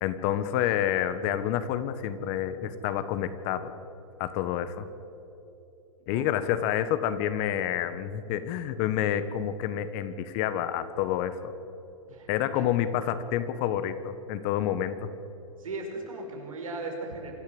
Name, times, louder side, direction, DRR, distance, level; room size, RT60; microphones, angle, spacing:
voice 1, 0.0-3.7 4.2-4.8 6.1-11.5 12.3-15.1, left 10 dB, 45° left, 12 dB, 1.4 m, -28 dB
voice 2, 6.1-6.6 12.1-12.3 12.5-12.7 15.6-17.3, right 2 dB, 90° right, 1 dB, 5.5 m, -37 dB
26.0 x 13.5 x 8.0 m, 2.9 s
hypercardioid pair, 125°, 17 cm